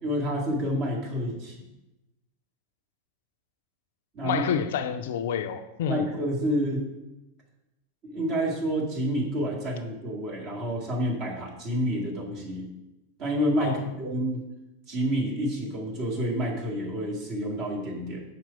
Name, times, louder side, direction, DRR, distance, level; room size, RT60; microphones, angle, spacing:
voice 1, 0.0-1.6 4.1-4.4 5.9-6.9 8.0-12.7 13.2-14.4 14.9-18.2, equal, 35° right, -2 dB, 2.0 m, -29 dB
voice 2, 4.2-6.1 13.6-13.8, left 8 dB, 55° left, 9 dB, 0.4 m, -28 dB
5.9 x 4.5 x 5.7 m, 0.97 s
figure-of-eight pair, 90°, 0 cm